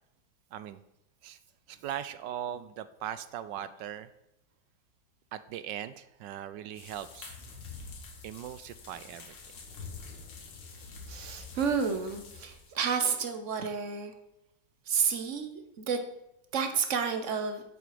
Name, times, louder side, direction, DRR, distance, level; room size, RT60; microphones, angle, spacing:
voice 1, 1.7-4.1 5.3-7.3 8.2-9.4, right 10 dB, 75° right, 14 dB, 1.1 m, -39 dB
sound 1, 6.8-12.8, left 4 dB, 65° left, 2.1 m, -46 dB
voice 2, 11.1-14.1 14.9-16.0 16.5-17.6, right 6 dB, 45° right, 7 dB, 1.2 m, -30 dB
10.0 x 7.9 x 4.9 m, 0.88 s
omnidirectional pair, 2.1 m